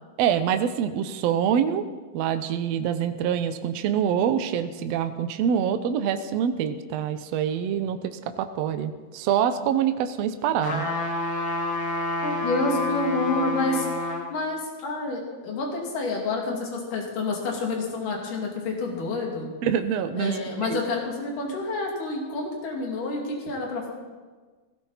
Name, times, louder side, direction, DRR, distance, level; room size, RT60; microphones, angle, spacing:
voice 1, 0.2-1.9 2.1-10.9 19.6-20.4 20.7-20.8, right 8 dB, 80° right, 9 dB, 1.5 m, -25 dB
sound 1, 10.6-14.3 14.8-14.9, left 2 dB, 40° left, 2.0 m, -28 dB
voice 2, 12.2-13.9 14.3-19.5 20.2-23.9, left 2 dB, 65° left, -1 dB, 4.0 m, -28 dB
17.0 x 16.0 x 4.1 m, 1.4 s
omnidirectional pair, 4.0 m